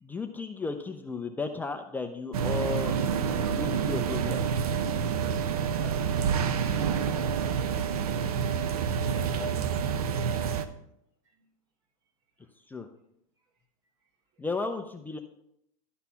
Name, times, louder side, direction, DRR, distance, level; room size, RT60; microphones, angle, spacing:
voice 1, 0.0-3.0 3.4-4.4 12.7-12.9 14.4-15.2, left 4 dB, 10° left, 5 dB, 0.5 m, -34 dB
sound 1, 2.3-10.7, right 7 dB, 80° right, 0.8 m, -28 dB
voice 2, 5.8-6.9 7.4-8.5 8.9-9.7, equal, 55° right, 2 dB, 3.1 m, -46 dB
11.5 x 4.1 x 5.6 m, 0.76 s
hypercardioid pair, 120°, 19 cm